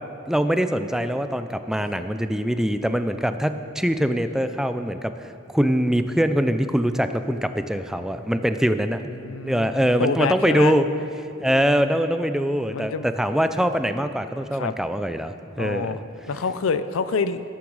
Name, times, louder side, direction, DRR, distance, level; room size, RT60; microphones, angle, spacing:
voice 1, 0.3-5.1 5.5-9.0 9.4-10.9 11.4-16.0, equal, ahead, 9 dB, 0.4 m, -23 dB
voice 2, 9.2-10.7 12.7-13.1 14.5-14.7 15.6-17.4, left 5 dB, 75° left, 12 dB, 0.5 m, -27 dB
13.5 x 13.0 x 4.8 m, 2.6 s
head